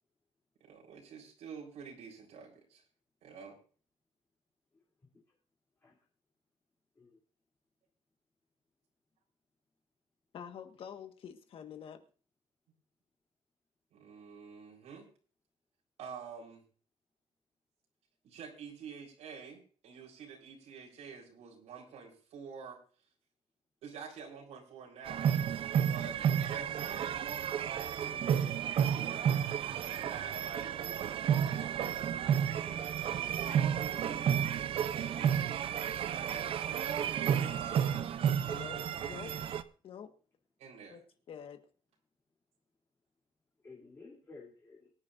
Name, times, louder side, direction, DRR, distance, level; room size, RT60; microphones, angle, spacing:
voice 1, 0.6-2.8 3.2-3.6 13.9-15.1 16.0-16.6 18.2-22.8 23.8-25.4 25.8-27.2 28.0-29.2 29.6-32.0 32.6-35.5 36.9-38.2 40.6-41.0, right 6 dB, 90° right, 4.1 m, -48 dB
voice 2, 10.3-12.0 38.5-39.3 39.8-40.1 40.9-41.0 41.3-41.6, left 8 dB, 55° left, 1.5 m, -47 dB
sound 1, 25.1-39.6, right 9 dB, 50° right, 0.7 m, -32 dB
voice 3, 36.4-36.7 38.8-38.9 43.6-44.9, left 3 dB, 20° left, 3.1 m, -54 dB
23.5 x 10.0 x 2.6 m
cardioid pair, 165°, 11 cm